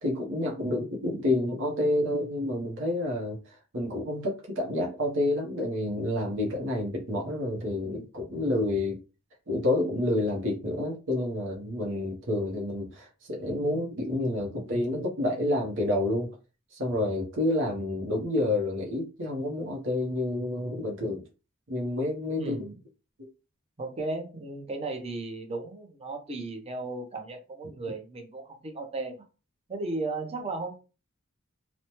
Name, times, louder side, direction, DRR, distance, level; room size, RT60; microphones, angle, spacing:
voice 1, 0.0-3.4 3.7-9.0 9.5-16.3 16.7-21.2 21.7-22.6, left 1 dB, 60° right, 0.8 m, -29 dB
voice 2, 22.4-22.8 23.8-29.2 29.7-30.7, right 2 dB, 30° right, 0.6 m, -35 dB
3.0 x 2.1 x 2.8 m
head